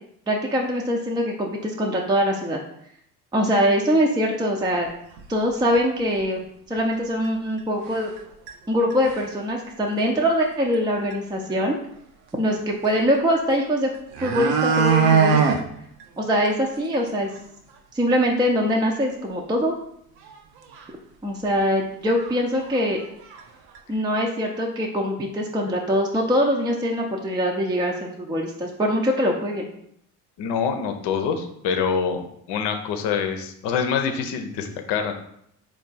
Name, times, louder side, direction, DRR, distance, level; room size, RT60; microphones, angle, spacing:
voice 1, 0.3-2.6 3.3-4.9 5.3-6.4 6.7-8.1 8.7-11.7 12.3-13.9 14.2-15.6 16.2-17.3 17.9-19.7 21.2-23.0 23.9-29.7, equal, 10° right, 0 dB, 0.5 m, -23 dB
sound 1, 5.2-5.3 5.8-5.9 6.2-6.3 7.2-7.3 7.9-8.2 8.5-8.6 8.9-9.3 10.7-10.8 11.1-11.2 13.5-13.6 13.9-15.6 16.0-16.1 16.4-16.5 16.9-17.0 17.4-17.5 20.3-20.4 20.7-20.8 21.6-21.7 22.1-22.4 22.6-23.4 23.7-23.8, right 5 dB, 75° right, 0.7 m, -21 dB
voice 2, 30.4-32.2 32.5-35.1, left 6 dB, 65° left, 6 dB, 0.7 m, -25 dB
3.6 x 2.5 x 4.0 m, 0.71 s
hypercardioid pair, 60°, 45 cm